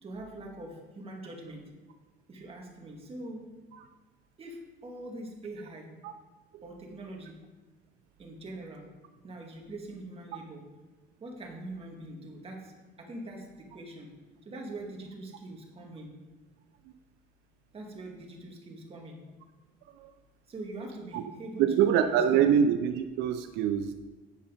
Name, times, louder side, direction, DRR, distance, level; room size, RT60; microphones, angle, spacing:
voice 1, 0.0-1.6 2.3-3.4 4.4-5.9 6.6-7.4 8.2-8.8 9.2-10.6 11.2-12.7 13.0-14.1 14.4-16.1 17.7-19.2 20.5-22.5, right 2 dB, 35° right, 0 dB, 2.2 m, -43 dB
voice 2, 21.6-23.9, right 8 dB, 90° right, 8 dB, 0.5 m, -25 dB
9.7 x 5.5 x 5.2 m, 1.2 s
cardioid pair, 110°, 17 cm